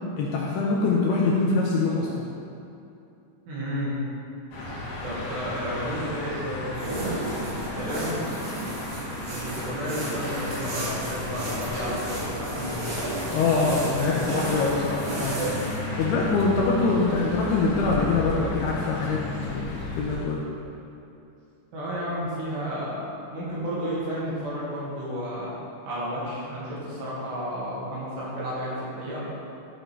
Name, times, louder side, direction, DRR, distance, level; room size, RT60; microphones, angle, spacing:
voice 1, 0.2-2.3 13.3-15.4 16.0-20.5, left 4 dB, 80° left, -3 dB, 2.5 m, -24 dB
voice 2, 3.5-4.0 5.0-7.2 7.8-8.2 9.2-12.8 21.7-25.5 25.8-29.2, equal, 65° right, -7 dB, 4.0 m, -32 dB
sound 1, 4.5-20.2, left 1 dB, 55° left, 2.7 m, -34 dB
sound 2, 6.7-15.8, right 1 dB, 85° right, 4.8 m, -33 dB
12.0 x 5.2 x 4.5 m, 2.7 s
omnidirectional pair, 5.4 m